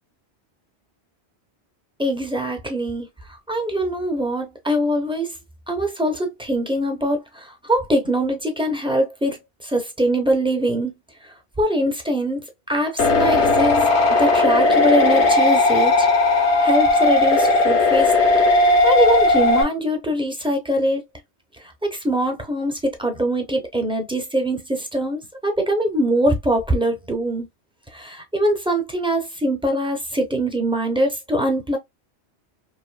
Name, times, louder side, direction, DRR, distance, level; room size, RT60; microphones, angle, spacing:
voice 1, 2.0-5.4 5.7-10.9 11.2-12.4 12.7-13.8 14.1-16.1 16.6-18.1 18.8-21.0 21.6-27.5 27.9-31.8, right 1 dB, 5° right, 0.5 m, -23 dB
sound 1, 13.0-19.6, left 2 dB, 80° left, 1.3 m, -16 dB
2.9 x 2.6 x 2.2 m
omnidirectional pair, 1.1 m